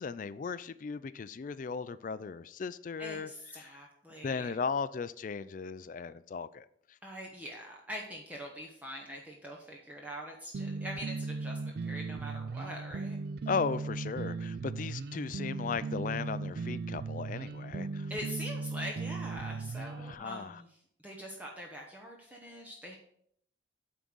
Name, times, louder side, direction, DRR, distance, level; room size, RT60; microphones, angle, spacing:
voice 1, 0.0-3.3 3.6-3.7 4.2-6.7 13.5-18.1 20.0-20.6, left 5 dB, 45° left, 0.3 m, -36 dB
voice 2, 3.0-4.6 7.0-13.2 18.1-20.8 21.0-23.0, equal, 10° right, 0.9 m, -43 dB
sound 1, 10.5-20.1, right 3 dB, 55° right, 0.3 m, -37 dB
9.0 x 3.8 x 6.1 m
head